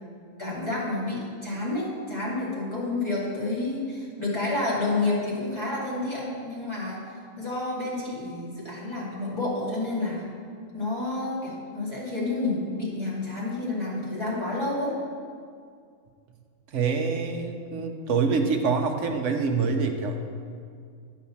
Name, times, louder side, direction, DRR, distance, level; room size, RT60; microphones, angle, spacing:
voice 1, 0.4-7.0 7.4-10.2 10.7-14.9, left 2 dB, 20° left, -7 dB, 2.4 m, -29 dB
voice 2, 16.7-20.2, right 4 dB, 65° right, 4 dB, 1.0 m, -26 dB
9.4 x 4.7 x 7.1 m, 2.2 s
omnidirectional pair, 1.5 m